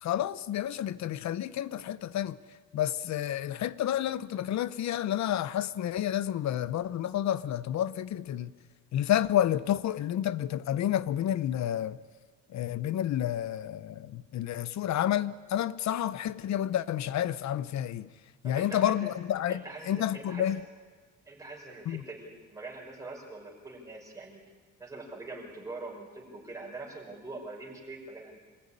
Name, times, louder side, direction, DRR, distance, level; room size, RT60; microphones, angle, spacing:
voice 1, 0.0-2.4 2.7-8.5 8.9-12.0 12.5-18.1 18.4-20.6 21.9-22.0, left 11 dB, 60° left, 0.8 m, -30 dB
voice 2, 18.4-19.1 19.5-20.4 21.3-24.4 24.8-28.4, right 2 dB, 10° right, 5.1 m, -43 dB
26.0 x 20.0 x 9.9 m
cardioid pair, 175°, 31 cm